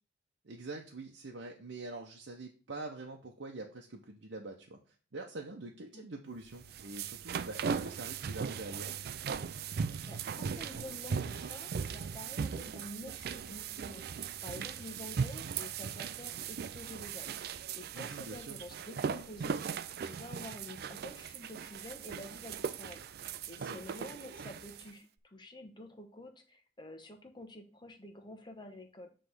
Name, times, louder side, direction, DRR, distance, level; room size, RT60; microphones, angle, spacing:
voice 1, 0.4-4.8 5.1-8.9 17.9-18.6 23.6-23.8, right 2 dB, 80° right, 1 dB, 0.9 m, -45 dB
sound 1, 6.5-24.9, right 6 dB, 55° right, 0.4 m, -38 dB
voice 2, 10.0-14.0 14.4-17.3 17.8-19.6 20.0-23.1 23.5-29.1, left 1 dB, 25° left, 4 dB, 1.1 m, -49 dB
7.7 x 3.3 x 6.1 m, 0.38 s
head